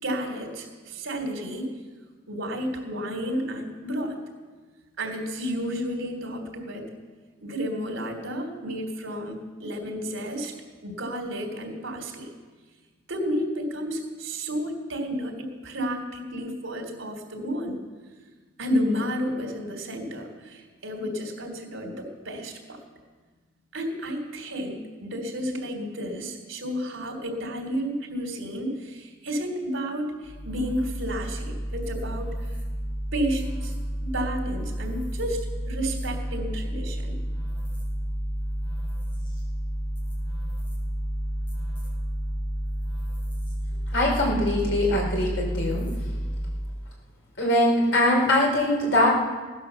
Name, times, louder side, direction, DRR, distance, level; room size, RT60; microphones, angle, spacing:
voice 1, 0.0-1.7 2.3-4.2 5.0-6.9 7.4-10.5 10.8-12.3 13.1-17.8 18.6-22.8 23.7-32.5 33.1-33.7 34.0-35.4 35.7-37.1, equal, 80° right, 2 dB, 3.3 m, -31 dB
sound 1, 30.2-46.8, equal, 25° left, 5.4 m, -31 dB
voice 2, 43.9-45.9 47.4-49.1, left 1 dB, 70° left, -1 dB, 4.1 m, -22 dB
17.0 x 9.9 x 7.0 m, 1.4 s
head